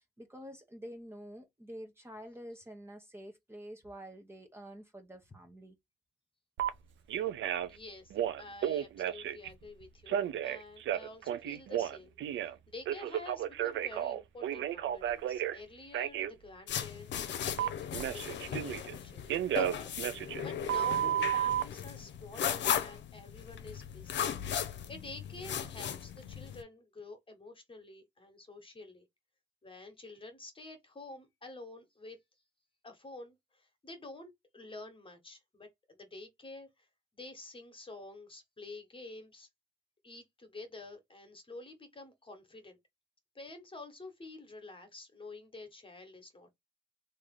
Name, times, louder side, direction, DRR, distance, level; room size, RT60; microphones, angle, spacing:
voice 1, 0.0-5.7, equal, 10° right, 1.0 m, -48 dB
Telephone, 6.6-6.7 7.1-7.8 8.1-9.5 10.1-12.5 12.9-15.6 15.9-16.3 17.6-18.9 19.3-21.6, right 11 dB, 70° right, 0.6 m, -33 dB
voice 2, 7.6-24.3 24.6-29.0 29.6-32.2 32.8-36.9 37.2-39.5 40.0-42.8 43.3-46.5, left 2 dB, 25° left, 1.3 m, -49 dB
sound 1, 16.7-26.6, left 9 dB, 65° left, 0.7 m, -37 dB
3.2 x 2.7 x 3.7 m
cardioid pair, 90°, 20 cm